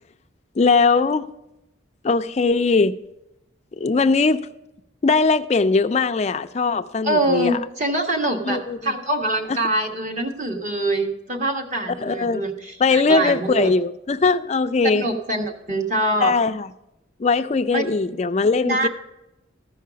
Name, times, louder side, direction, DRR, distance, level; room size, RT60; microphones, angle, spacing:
voice 1, 0.6-1.3 2.0-3.0 3.8-4.5 5.0-7.6 8.5-8.9 9.5-9.6 12.0-12.4 12.8-15.1 16.2-16.7 17.2-18.9, left 4 dB, 35° left, 0.3 m, -20 dB
voice 2, 7.0-13.7 14.8-16.3 17.7-17.8 18.6-18.9, right 1 dB, 35° right, 1.4 m, -24 dB
14.0 x 5.6 x 5.0 m
head